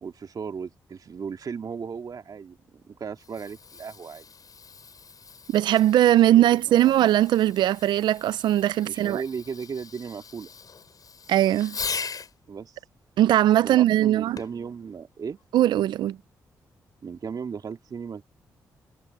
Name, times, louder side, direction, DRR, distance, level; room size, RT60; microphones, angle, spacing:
voice 1, 0.0-4.2 6.0-6.9 8.8-10.5 12.5-12.8 13.6-15.4 17.0-18.2, right 6 dB, 55° right, 2.6 m, -36 dB
Fireworks, 3.0-12.3 14.4-14.7 15.4-15.5, left 5 dB, 55° left, 6.8 m, -40 dB
voice 2, 5.5-9.2 11.3-11.8 13.2-14.4 15.5-16.2, right 13 dB, 80° right, 0.7 m, -20 dB
supercardioid pair, 45°, 8 cm